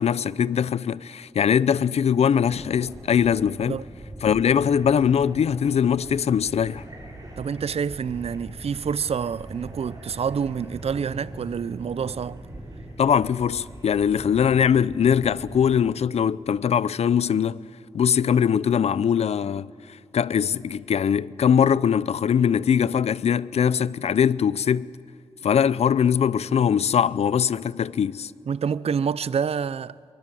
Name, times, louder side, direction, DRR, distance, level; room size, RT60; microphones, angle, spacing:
voice 1, 0.0-3.8 4.2-6.8 13.0-17.6 17.9-19.7 20.1-24.9 25.4-28.3, left 8 dB, 75° left, 0.5 m, -21 dB
sound 1, 2.4-15.8, right 1 dB, 35° right, 7.1 m, -41 dB
voice 2, 7.4-12.4 28.5-30.0, right 7 dB, 65° right, 0.6 m, -27 dB
23.5 x 23.5 x 7.7 m
cardioid pair, 65°, 11 cm